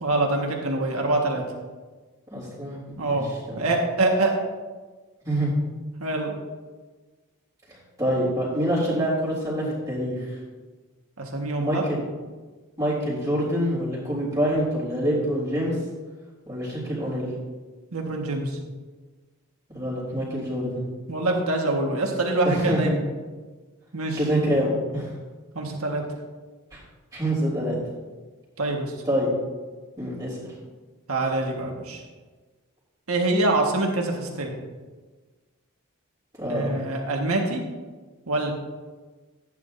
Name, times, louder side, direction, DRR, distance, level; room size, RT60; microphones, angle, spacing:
voice 1, 0.0-1.4 3.0-3.3 3.6-4.4 6.0-6.3 11.2-11.8 17.9-18.6 21.1-23.0 23.9-24.2 25.6-26.0 28.6-28.9 31.1-32.0 33.1-34.5 36.5-37.6 38.3-38.5, right 2 dB, 90° right, 1 dB, 1.6 m, -25 dB
voice 2, 2.3-3.7 5.3-5.6 7.7-10.4 11.6-12.0 12.8-15.8 16.5-17.3 19.7-20.8 22.4-22.9 24.1-25.1 26.7-26.8 27.1-27.8 29.0-29.3 30.0-30.4 36.4-36.8, equal, 15° right, -7 dB, 3.5 m, -26 dB
15.0 x 9.5 x 2.7 m, 1.3 s
head